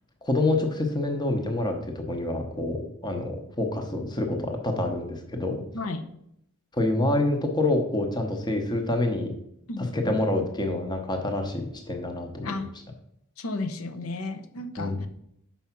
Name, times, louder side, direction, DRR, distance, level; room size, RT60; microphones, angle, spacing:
voice 1, 0.2-5.6 6.7-9.3 9.9-12.6 14.8-15.1, left 2 dB, 20° left, 4 dB, 0.8 m, -27 dB
voice 2, 9.7-10.2 12.4-12.7 13.4-15.1, left 2 dB, 85° left, 7 dB, 0.8 m, -33 dB
5.7 x 4.7 x 5.8 m, 0.75 s
head